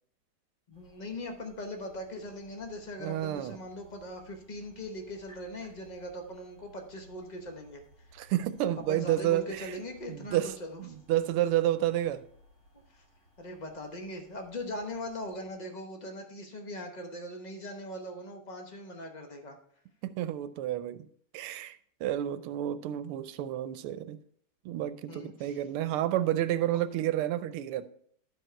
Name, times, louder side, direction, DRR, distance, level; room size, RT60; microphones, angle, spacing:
sound 1, 0.7-15.4, equal, 65° left, 5.2 m, -60 dB
voice 1, 0.7-7.8 8.9-11.0 12.9-13.0 13.4-19.6 25.1-25.6 26.7-26.8, left 1 dB, 50° left, 0.5 m, -40 dB
voice 2, 3.0-3.6 8.1-9.8 10.1-12.2 20.0-21.1 21.3-24.2 24.6-27.9, right 12 dB, 90° right, 1.5 m, -30 dB
11.5 x 4.8 x 4.4 m
omnidirectional pair, 2.4 m